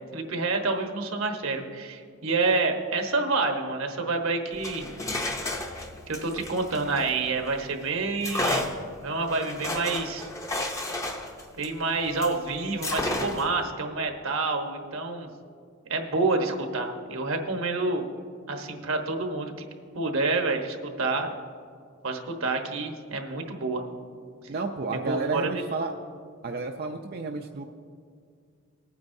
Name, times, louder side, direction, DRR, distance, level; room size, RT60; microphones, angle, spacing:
voice 1, 0.0-4.9 6.1-8.7 9.0-10.3 11.6-15.3 15.9-18.0 18.5-19.7 19.9-21.3 22.0-23.8 25.1-25.6, right 3 dB, 75° right, 4 dB, 1.1 m, -28 dB
sound 1, 4.5-7.6 8.2-12.4 12.8-13.6, left 2 dB, 15° left, 0.7 m, -32 dB
voice 2, 24.5-25.9 26.4-27.6, right 3 dB, 45° right, 3 dB, 0.5 m, -31 dB
19.5 x 9.3 x 2.7 m, 2.2 s
head